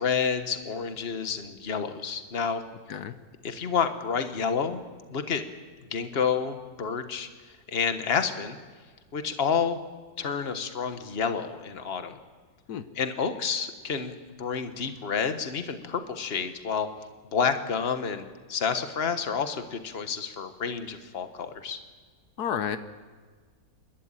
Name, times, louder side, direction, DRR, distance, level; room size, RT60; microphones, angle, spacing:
voice 1, 0.0-2.6 3.4-4.8 5.1-5.4 5.9-7.3 7.7-8.6 9.1-9.8 10.2-12.1 13.0-16.9 17.3-21.8, left 6 dB, 40° left, 8 dB, 1.5 m, -29 dB
voice 2, 22.4-22.8, left 8 dB, 80° left, 11 dB, 1.5 m, -30 dB
29.0 x 12.5 x 9.0 m, 1.5 s
omnidirectional pair, 1.7 m